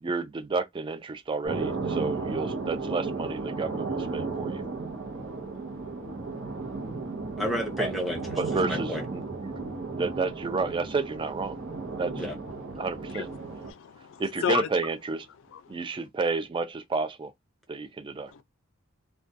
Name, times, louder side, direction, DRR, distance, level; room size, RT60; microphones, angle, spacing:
voice 1, 0.0-4.6 7.8-7.9 8.4-9.6 9.9-11.6 12.0-12.2 12.8-13.3 14.2-15.3 15.7-17.3 17.7-18.3, right 4 dB, 25° right, 0.3 m, -31 dB
sound 1, 1.4-13.7, right 3 dB, 60° right, 0.7 m, -34 dB
voice 2, 7.4-9.0 12.2-12.3, equal, ahead, 0.8 m, -31 dB
voice 3, 13.1-14.7 15.5-15.8 18.3-18.4, left 8 dB, 60° left, 0.4 m, -33 dB
2.3 x 2.2 x 2.6 m
head